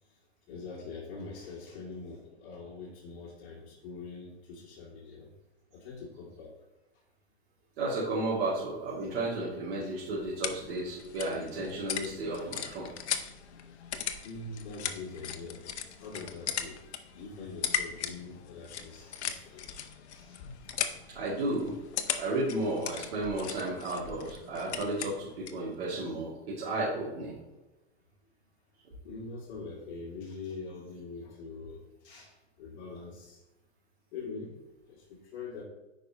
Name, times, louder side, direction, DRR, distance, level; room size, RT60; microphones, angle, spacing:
voice 1, 0.5-5.3 5.7-6.5 9.8-9.9 14.2-15.7 16.0-16.8 17.1-19.6 20.1-21.0 29.0-33.4 34.1-34.5 34.9-35.6, left 4 dB, 50° left, -7 dB, 2.3 m, -44 dB
voice 2, 7.8-12.9 21.1-21.8 22.1-27.3, right 2 dB, 65° right, -7 dB, 2.6 m, -33 dB
sound 1, 10.0-25.7, left 8 dB, 85° left, 0.8 m, -38 dB
8.8 x 5.3 x 2.9 m, 1.0 s
hypercardioid pair, 130°, 33 cm